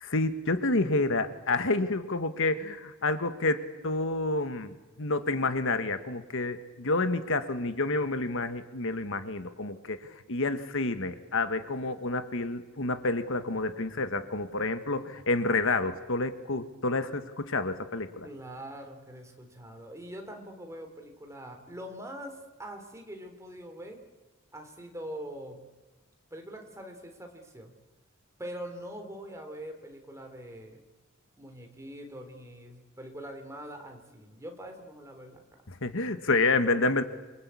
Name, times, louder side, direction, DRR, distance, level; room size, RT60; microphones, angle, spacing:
voice 1, 0.0-10.0 10.3-18.3 35.8-37.0, left 2 dB, 65° left, 10 dB, 1.5 m, -29 dB
voice 2, 18.2-24.0 24.5-25.7 26.3-27.7 28.4-30.8 31.4-35.6, equal, 15° right, 4 dB, 3.9 m, -43 dB
28.0 x 24.5 x 8.5 m, 1.2 s
head